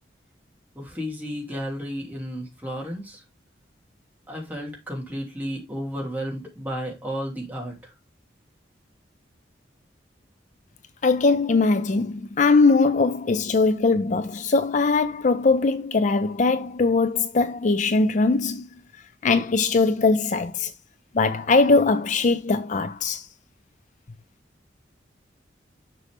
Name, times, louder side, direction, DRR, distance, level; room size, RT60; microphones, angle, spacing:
voice 1, 0.7-3.2 4.3-7.9, equal, 10° right, 2.8 m, -33 dB
voice 2, 11.0-18.7 19.2-20.7 21.1-23.3, left 3 dB, 40° left, 0.4 m, -21 dB
6.7 x 6.2 x 3.6 m
head